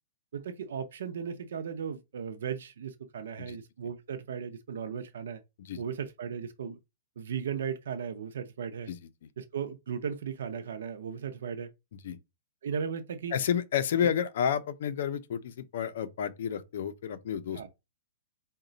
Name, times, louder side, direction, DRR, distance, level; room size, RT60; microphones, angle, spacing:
voice 1, 0.3-5.4 5.8-6.8 7.2-8.9 9.4-11.7 12.6-13.4 14.0-14.1 17.5-17.7, right 7 dB, 70° right, 0.5 m, -36 dB
voice 2, 13.3-17.6, left 8 dB, 55° left, 0.5 m, -30 dB
4.0 x 2.2 x 3.8 m
hypercardioid pair, 170°, 0 cm